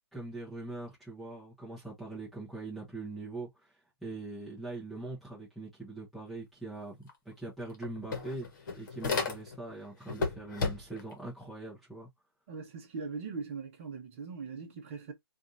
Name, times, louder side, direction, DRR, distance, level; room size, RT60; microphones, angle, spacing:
voice 1, 0.1-3.7 4.0-8.5 8.8-12.1, right 2 dB, ahead, 0.9 m, -42 dB
sound 1, 7.1-7.2 7.5-9.7 10.1-11.1, left 4 dB, 45° left, 1.2 m, -34 dB
voice 2, 12.5-15.1, right 5 dB, 30° right, 1.0 m, -40 dB
3.3 x 2.6 x 2.7 m
hypercardioid pair, 155°, 13 cm